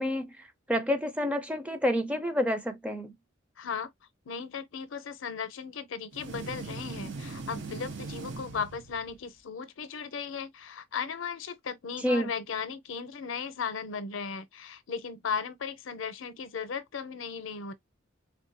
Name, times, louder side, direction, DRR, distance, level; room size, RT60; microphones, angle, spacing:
voice 1, 0.0-3.1 12.0-12.3, equal, 5° right, 0.5 m, -29 dB
voice 2, 3.6-3.9 4.3-17.7, left 6 dB, 70° left, 0.6 m, -36 dB
sound 1, 6.1-9.3, right 3 dB, 65° right, 0.6 m, -40 dB
3.5 x 2.2 x 2.6 m
head